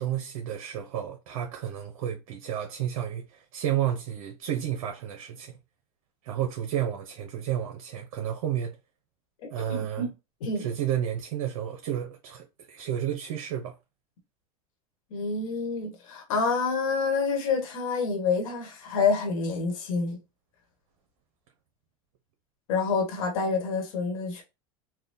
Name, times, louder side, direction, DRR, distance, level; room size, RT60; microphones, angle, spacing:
voice 1, 0.0-5.5 6.2-8.7 9.5-10.1 10.6-13.7, right 10 dB, 70° right, 0.7 m, -31 dB
voice 2, 9.7-10.1 10.4-10.7 15.1-20.2 22.7-24.4, left 4 dB, 75° left, 1.2 m, -27 dB
3.5 x 2.2 x 2.6 m
hypercardioid pair, 105°, 18 cm